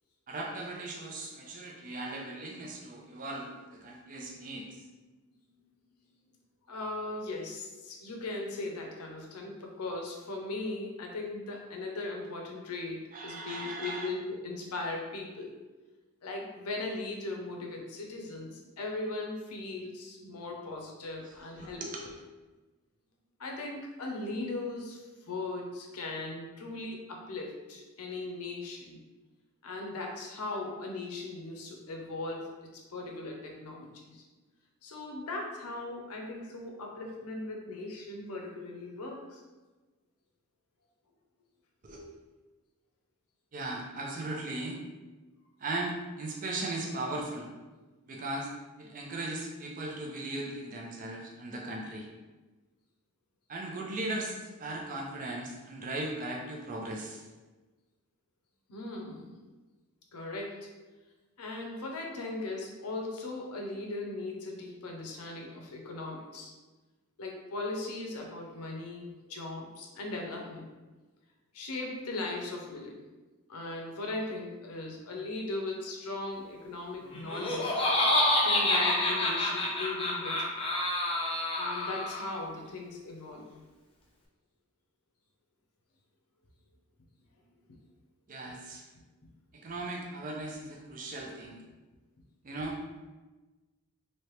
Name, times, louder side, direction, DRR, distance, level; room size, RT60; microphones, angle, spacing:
voice 1, 0.3-4.8 13.1-14.1 21.2-22.2 41.8-42.1 43.5-44.8 45.6-47.5 48.1-48.5 48.8-52.1 53.5-57.3 88.3-88.8 89.5-91.6 92.4-92.8, right 2 dB, 35° right, -1 dB, 0.4 m, -38 dB
voice 2, 6.7-15.5 16.2-21.8 23.4-29.0 29.6-34.2 34.8-39.4 58.7-59.3 60.1-60.7 61.4-66.5 67.2-70.7 71.5-73.0 73.5-77.7 78.4-80.5 81.5-83.5, left 2 dB, 85° left, 1 dB, 0.7 m, -38 dB
Laughter, 77.1-82.4, left 1 dB, 25° left, 0.5 m, -28 dB
3.1 x 2.8 x 3.1 m, 1.2 s
head